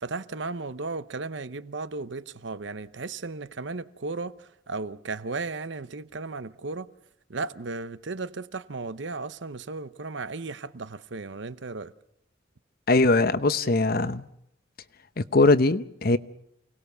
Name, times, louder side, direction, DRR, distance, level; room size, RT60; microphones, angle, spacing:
voice 1, 0.0-6.9 7.3-11.9, right 3 dB, 65° right, 0.8 m, -35 dB
voice 2, 12.9-14.3 15.2-16.2, left 2 dB, 50° left, 0.9 m, -21 dB
29.0 x 19.0 x 6.9 m
head